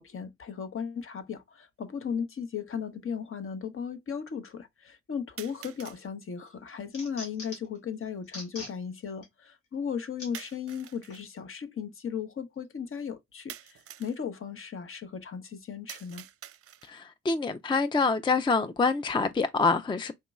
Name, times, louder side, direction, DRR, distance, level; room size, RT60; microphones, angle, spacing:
voice 1, 0.0-16.3, left 7 dB, 45° left, 0.9 m, -36 dB
sound 1, 1.0-1.1 2.1-2.2 5.4-6.0 10.3-11.3 13.5-14.2 15.9-17.1, right 11 dB, 50° right, 0.6 m, -46 dB
sound 2, 5.7-6.1 6.5-7.8 8.2-8.7 9.2-9.3 10.2-10.3 11.1-11.2, left 1 dB, 85° left, 2.1 m, -42 dB
voice 2, 16.8-20.1, left 4 dB, 15° left, 0.5 m, -26 dB
4.5 x 2.9 x 2.3 m
hypercardioid pair, 45°, 31 cm